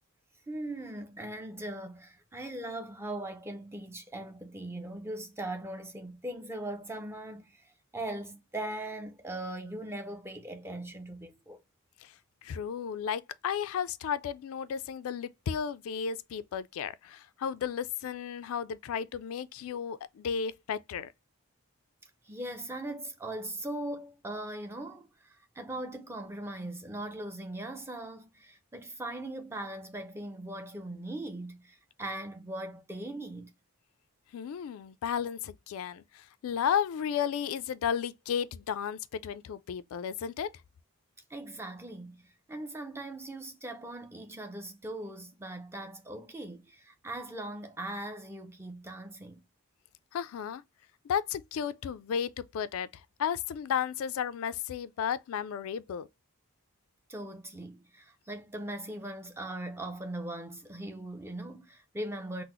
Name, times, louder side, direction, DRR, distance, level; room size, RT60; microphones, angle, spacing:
voice 1, 0.5-11.6 22.2-33.5 41.3-49.4 57.1-62.4, right 1 dB, 10° right, 0.5 m, -40 dB
voice 2, 12.4-21.1 34.3-40.5 50.1-50.6 51.0-56.1, left 8 dB, 70° left, 0.3 m, -33 dB
3.8 x 2.0 x 3.0 m
head